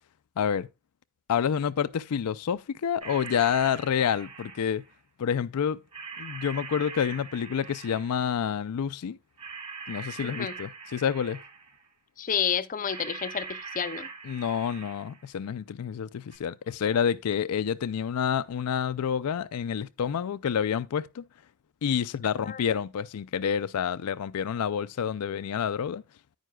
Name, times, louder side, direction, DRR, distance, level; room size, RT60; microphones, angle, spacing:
voice 1, 0.4-0.7 1.3-4.8 5.2-5.8 6.2-9.2 9.9-11.4 14.2-21.2 21.8-26.0, left 8 dB, 85° left, 0.4 m, -28 dB
sound 1, 3.0-4.9 5.9-8.3 9.4-11.8 12.8-15.3 16.3-16.4, right 5 dB, 30° right, 2.5 m, -42 dB
voice 2, 10.2-10.5 12.2-14.1 22.4-22.6, left 7 dB, 35° left, 0.6 m, -30 dB
10.0 x 9.3 x 2.3 m
head